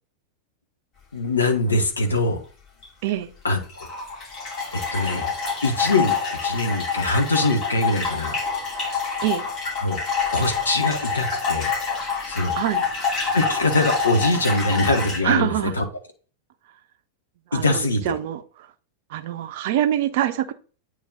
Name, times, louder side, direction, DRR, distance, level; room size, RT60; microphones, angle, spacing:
voice 1, 1.1-2.4 3.4-3.9 4.7-5.3 5.6-6.1 6.4-8.4 9.8-10.0 10.3-11.7 12.3-12.5 13.3-15.8 17.5-18.1, left 2 dB, 75° left, 5 dB, 1.1 m, -23 dB
sound 1, 2.8-3.1 3.5-15.2, left 5 dB, 35° left, 3.2 m, -27 dB
voice 2, 15.2-15.8 17.5-18.4 19.1-20.5, right 12 dB, 50° right, 10 dB, 0.6 m, -24 dB
8.7 x 3.2 x 3.8 m, 0.38 s
figure-of-eight pair, 90°, 0 cm